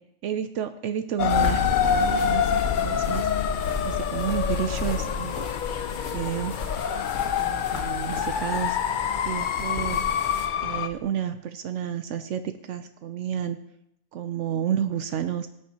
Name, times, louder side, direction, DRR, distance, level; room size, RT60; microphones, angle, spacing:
voice 1, 0.2-3.3 3.8-5.4 6.1-6.5 7.2-8.8 9.2-10.0 10.6-13.6 14.1-15.5, right 9 dB, 75° right, 9 dB, 1.0 m, -30 dB
sound 1, 1.2-10.9, left 8 dB, 60° left, 0.5 m, -26 dB
sound 2, 1.3-10.5, left 4 dB, 85° left, 1.8 m, -33 dB
sound 3, 2.4-11.0, equal, 10° left, 2.8 m, -46 dB
17.0 x 9.9 x 2.9 m, 0.78 s
omnidirectional pair, 1.3 m